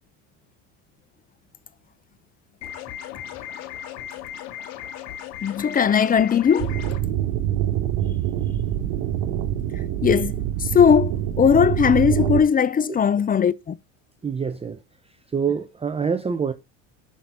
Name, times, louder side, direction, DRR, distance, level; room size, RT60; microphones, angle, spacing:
sound 1, 2.6-7.0, left 10 dB, 70° left, 2.4 m, -36 dB
voice 1, 5.4-6.8 10.0-13.7, left 7 dB, 20° left, 0.7 m, -19 dB
sound 2, 6.6-12.4, right 12 dB, 60° right, 2.7 m, -25 dB
voice 2, 14.2-14.8 15.3-16.5, right 6 dB, 15° right, 0.9 m, -25 dB
11.5 x 6.0 x 3.9 m
supercardioid pair, 115°, 38 cm